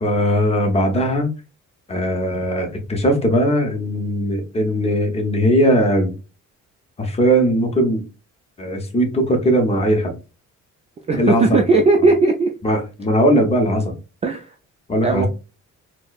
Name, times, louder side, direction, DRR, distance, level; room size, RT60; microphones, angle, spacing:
voice 1, 0.0-1.3 1.9-6.1 7.0-8.0 8.6-10.1 11.2-11.6 12.6-13.9 14.9-15.3, equal, 20° left, 0.7 m, -19 dB
voice 2, 11.1-12.5 14.2-14.5 15.0-15.3, right 3 dB, 20° right, 0.3 m, -17 dB
4.3 x 2.1 x 2.3 m
cardioid pair, 140°, 30 cm